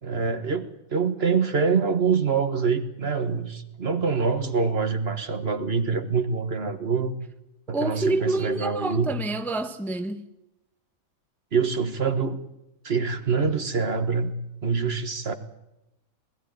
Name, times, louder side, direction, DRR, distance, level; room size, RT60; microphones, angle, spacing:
voice 1, 0.0-7.1 7.7-9.1 11.5-12.4 12.8-15.3, right 5 dB, 45° right, 1.5 m, -25 dB
voice 2, 7.7-10.2, right 2 dB, ahead, 0.9 m, -27 dB
20.0 x 14.5 x 9.3 m
omnidirectional pair, 1.5 m